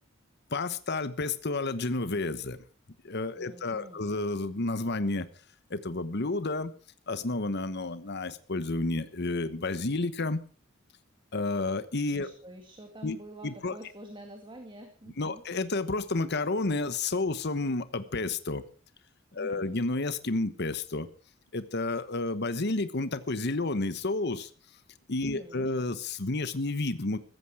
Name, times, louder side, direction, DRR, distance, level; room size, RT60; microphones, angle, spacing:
voice 1, 0.5-2.6 3.0-5.3 5.7-6.7 7.1-10.4 11.3-12.3 13.0-13.2 13.4-13.7 15.2-18.6 19.3-21.1 21.5-24.5 25.1-27.2, left 2 dB, 55° left, 13 dB, 1.1 m, -30 dB
voice 2, 3.4-4.2 12.1-15.4 19.3-19.7 25.2-25.7, right 1 dB, 25° right, 5 dB, 2.2 m, -47 dB
15.5 x 14.5 x 4.9 m, 0.37 s
head